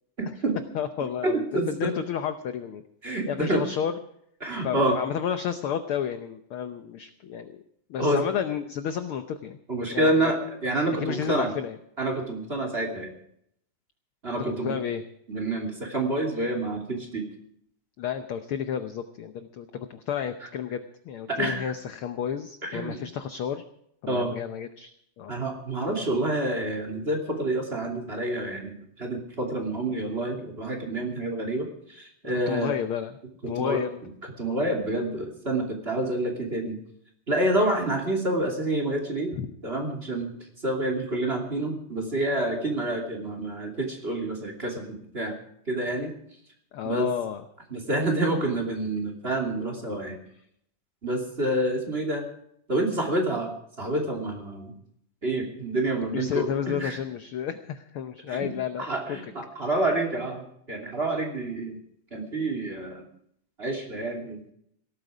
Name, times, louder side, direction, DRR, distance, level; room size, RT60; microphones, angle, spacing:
voice 1, 0.2-0.6 1.2-1.9 3.0-3.6 4.4-5.0 8.0-8.2 9.7-11.5 12.0-13.1 14.2-14.8 15.3-17.3 21.3-21.7 22.6-23.0 24.1-24.3 25.3-32.8 33.4-33.8 34.4-36.8 37.3-39.4 39.6-40.3 40.6-45.4 45.7-46.1 46.8-47.1 47.7-50.2 51.0-52.2 52.7-53.5 53.8-54.7 55.2-57.0 58.3-58.5 58.8-61.8 62.1-63.1 63.6-64.5, right 1 dB, 20° right, 3 dB, 2.8 m, -28 dB
voice 2, 0.7-2.8 3.3-4.0 4.6-7.6 7.9-9.6 9.9-10.3 11.0-11.8 14.4-15.0 18.0-23.6 24.0-24.9 25.2-25.3 32.5-33.2 33.5-34.0 39.3-39.5 46.7-47.4 56.0-59.2, left 8 dB, 75° left, 9 dB, 1.2 m, -31 dB
18.0 x 13.0 x 5.0 m, 0.71 s
omnidirectional pair, 3.4 m